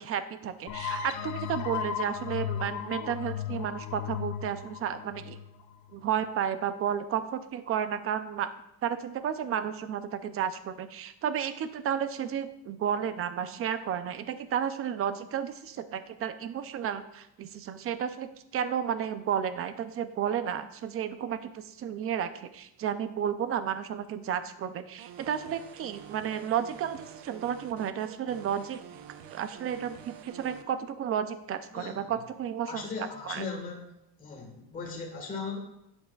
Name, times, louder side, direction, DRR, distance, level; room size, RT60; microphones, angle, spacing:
voice 1, 0.0-5.4 5.9-8.5 8.8-28.8 29.3-32.8 33.3-33.4, right 8 dB, 30° right, 11 dB, 0.5 m, -32 dB
sound 1, 0.7-6.1, left 9 dB, 40° left, 0.7 m, -35 dB
sound 2, 25.0-30.6, right 9 dB, 75° right, 0.9 m, -48 dB
voice 2, 31.7-32.1 32.6-33.8 34.2-35.6, left 4 dB, 20° left, -1 dB, 1.5 m, -38 dB
11.0 x 8.0 x 2.3 m, 0.83 s
cardioid pair, 155°, 45 cm